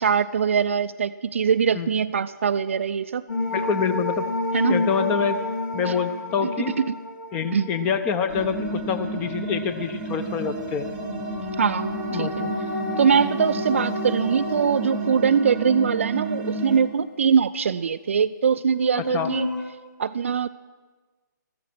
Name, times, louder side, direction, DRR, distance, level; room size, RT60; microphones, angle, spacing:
voice 1, 0.0-3.2 4.5-4.8 5.8-6.0 6.4-6.5 6.8-7.0 7.5-7.7 11.6-12.4 13.0-19.5 20.0-20.5, right 6 dB, 40° right, 13 dB, 0.4 m, -22 dB
sound 1, 3.3-8.5 10.7-16.9 17.2-17.3 18.7-19.6, left 2 dB, 65° left, 4.1 m, -31 dB
voice 2, 3.5-4.2 4.7-5.4 5.7-6.7 7.3-10.9 12.1-12.5 19.1-19.3, left 6 dB, 15° left, 10 dB, 0.6 m, -26 dB
sound 2, 8.3-16.8, right 2 dB, 10° right, 1.1 m, -31 dB
14.0 x 13.5 x 6.1 m, 1.3 s
figure-of-eight pair, 140°, 10 cm